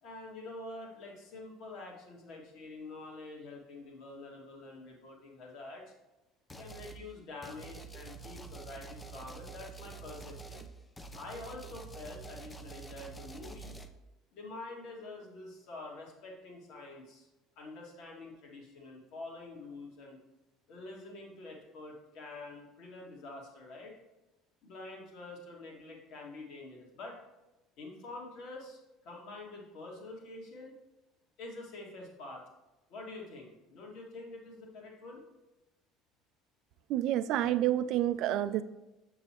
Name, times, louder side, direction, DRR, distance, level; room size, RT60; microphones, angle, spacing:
voice 1, 0.0-5.9 6.6-10.7 11.1-13.7 14.3-17.3 17.6-20.2 20.7-23.9 24.6-27.2 27.8-30.8 31.4-32.4 32.9-35.2, left 2 dB, 60° left, -1 dB, 2.1 m, -46 dB
sound 1, 6.5-7.0 7.4-13.9, right 4 dB, 15° left, 0.7 m, -47 dB
voice 2, 36.9-38.6, right 12 dB, 65° right, 12 dB, 0.4 m, -29 dB
6.9 x 6.8 x 3.0 m, 1.0 s
hypercardioid pair, 70°, 0 cm